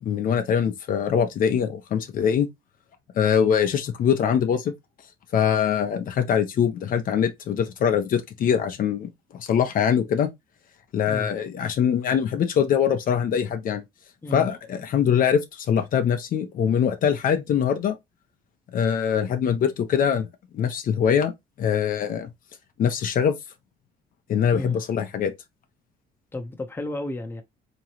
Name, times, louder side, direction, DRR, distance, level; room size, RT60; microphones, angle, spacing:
voice 1, 0.0-2.5 3.1-4.7 5.3-10.3 10.9-13.8 14.3-18.0 18.7-20.3 20.5-21.3 21.6-22.3 22.8-23.3 24.3-25.3, left 8 dB, 55° left, 0.8 m, -23 dB
voice 2, 26.3-27.4, left 1 dB, 15° left, 0.8 m, -32 dB
3.7 x 3.0 x 2.9 m
cardioid pair, 110°, 17 cm